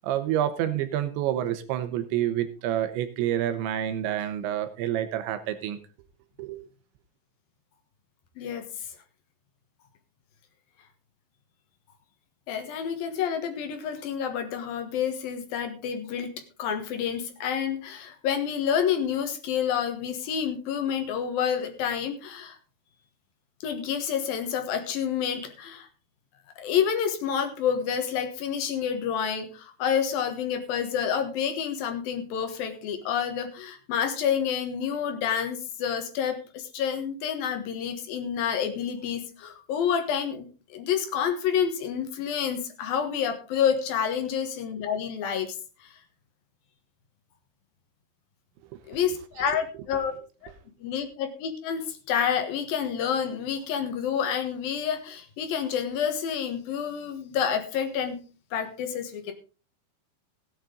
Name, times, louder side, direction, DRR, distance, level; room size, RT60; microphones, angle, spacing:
voice 1, 0.0-5.8 6.4-6.7 48.7-48.8, right 11 dB, 85° right, 10 dB, 3.4 m, -28 dB
voice 2, 12.5-16.3 16.6-22.6 23.6-25.9 26.6-45.9 48.9-50.1 50.4-50.5 50.8-58.2 58.5-59.3, left 8 dB, 65° left, 6 dB, 2.8 m, -28 dB
16.5 x 8.8 x 3.8 m, 0.35 s
omnidirectional pair, 5.2 m